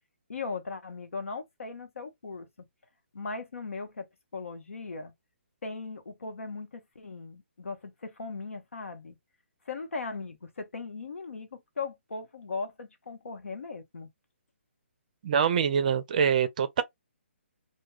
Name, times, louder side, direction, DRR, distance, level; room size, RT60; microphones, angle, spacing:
voice 1, 0.3-2.5 3.1-4.1 4.3-5.1 5.6-9.2 9.7-14.1, left 4 dB, 90° left, 0.9 m, -38 dB
voice 2, 15.2-16.8, right 7 dB, 35° right, 0.4 m, -25 dB
2.2 x 2.2 x 3.0 m
hypercardioid pair, 165°, 7 cm